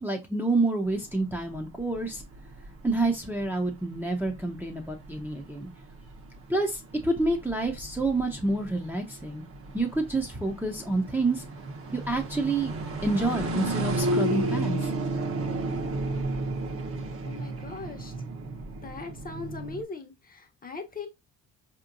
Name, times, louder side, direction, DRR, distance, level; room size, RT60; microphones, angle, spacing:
voice 1, 0.0-2.2 2.8-5.7 6.5-9.4 9.7-11.4 11.9-12.8 13.0-14.9, right 2 dB, 5° right, 0.6 m, -28 dB
sound 1, 0.9-19.8, right 2 dB, 50° right, 0.9 m, -33 dB
voice 2, 17.2-18.1 18.8-21.1, left 4 dB, 30° left, 0.8 m, -39 dB
4.3 x 2.9 x 2.5 m
cardioid pair, 90°, 30 cm